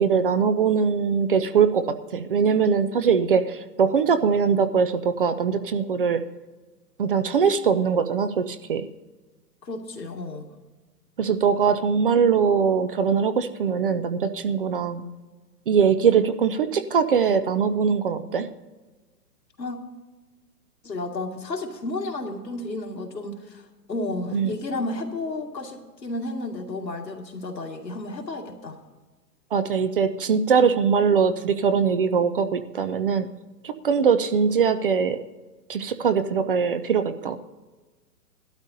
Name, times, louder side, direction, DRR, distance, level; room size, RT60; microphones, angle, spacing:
voice 1, 0.0-1.8 2.1-6.2 7.0-8.8 11.2-15.0 15.7-18.5 24.3-24.5 29.5-33.3 33.6-35.2 35.7-37.4, right 6 dB, 35° right, 10 dB, 0.4 m, -22 dB
voice 2, 9.6-10.5 19.6-19.8 20.8-28.8, left 2 dB, 90° left, 1 dB, 2.1 m, -32 dB
18.5 x 12.0 x 2.7 m, 1.2 s
hypercardioid pair, 125°, 49 cm